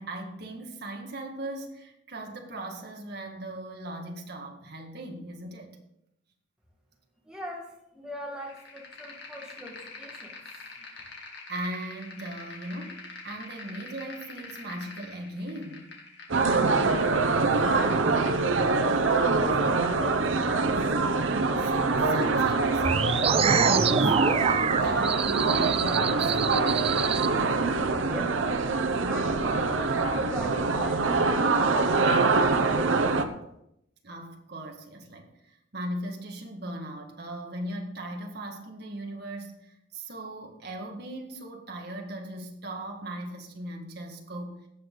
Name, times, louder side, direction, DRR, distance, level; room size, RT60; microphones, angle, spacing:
voice 1, 0.0-5.8 11.5-15.9 21.6-26.4 34.0-44.6, right 1 dB, 55° right, 1.8 m, -38 dB
voice 2, 7.3-10.4 17.4-20.7 28.1-28.4 29.1-33.3, equal, 5° right, 2.1 m, -40 dB
sound 1, 8.4-18.4, left 3 dB, 60° left, 2.4 m, -45 dB
sound 2, 16.3-33.2, right 3 dB, 80° right, 0.9 m, -24 dB
sound 3, 22.8-27.3, right 6 dB, 30° right, 0.4 m, -26 dB
16.5 x 6.4 x 3.9 m
head